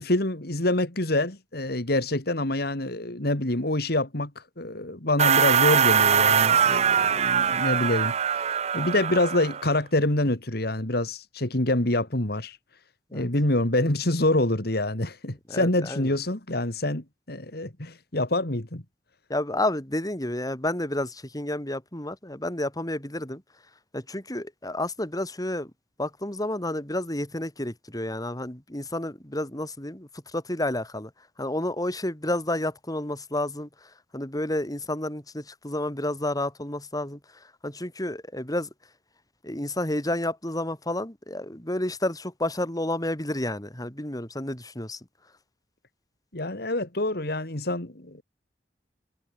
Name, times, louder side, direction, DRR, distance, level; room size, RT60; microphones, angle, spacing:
voice 1, 0.0-4.3 4.6-8.4 8.7-12.6 13.1-18.8 46.3-48.2, left 1 dB, 60° left, 2.9 m, -26 dB
sound 1, 5.2-9.7, right 8 dB, 40° right, 0.5 m, -22 dB
voice 2, 15.5-16.1 19.3-23.4 23.9-25.7 26.0-31.1 31.4-38.7 39.4-45.0, left 1 dB, 20° left, 4.6 m, -30 dB
head